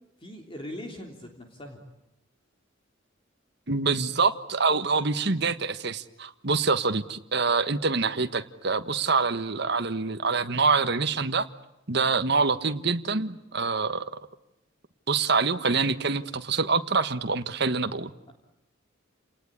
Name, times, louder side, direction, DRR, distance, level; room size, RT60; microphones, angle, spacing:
voice 1, 0.2-1.8 12.1-12.2, left 1 dB, 25° left, 2 dB, 3.4 m, -41 dB
voice 2, 3.7-11.5 11.9-14.1 15.1-18.1, right 4 dB, 60° right, 9 dB, 1.4 m, -25 dB
30.0 x 19.5 x 9.9 m, 0.91 s
head